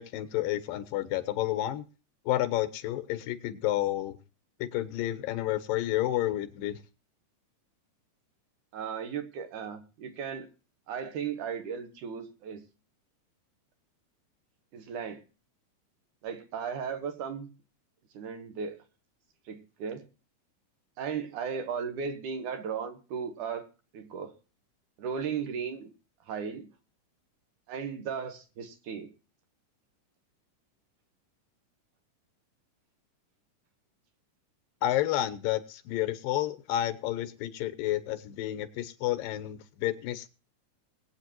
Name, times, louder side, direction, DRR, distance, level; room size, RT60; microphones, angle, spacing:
voice 1, 0.0-1.9 2.3-4.2 4.6-6.8 34.8-40.3, left 14 dB, 85° left, 12 dB, 2.6 m, -30 dB
voice 2, 8.7-10.5 10.9-12.7 14.7-15.2 16.2-17.5 18.1-18.8 19.5-20.1 21.0-23.7 23.9-24.3 25.0-25.9 26.3-26.7 27.7-29.1, right 6 dB, 70° right, 7 dB, 2.6 m, -36 dB
22.0 x 8.5 x 3.0 m, 0.34 s
omnidirectional pair, 3.9 m